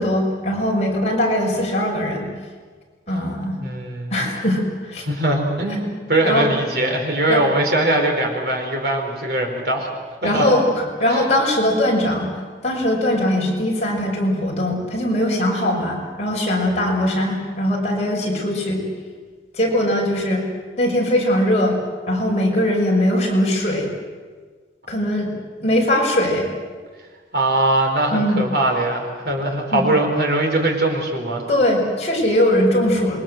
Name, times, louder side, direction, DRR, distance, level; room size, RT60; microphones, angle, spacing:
voice 1, 0.0-2.3 3.1-3.6 4.1-5.1 6.2-6.5 7.3-7.4 10.2-18.8 19.5-20.5 20.8-21.8 22.1-23.9 24.9-25.3 25.6-26.5 28.1-28.4 29.7-29.8 31.5-33.2, left 1 dB, 35° left, -2 dB, 5.9 m, -20 dB
voice 2, 3.6-4.3 5.1-9.9 10.2-10.5 11.1-11.2 27.3-31.4, right 1 dB, 55° right, 2 dB, 4.6 m, -21 dB
27.5 x 22.5 x 7.9 m, 1.5 s
head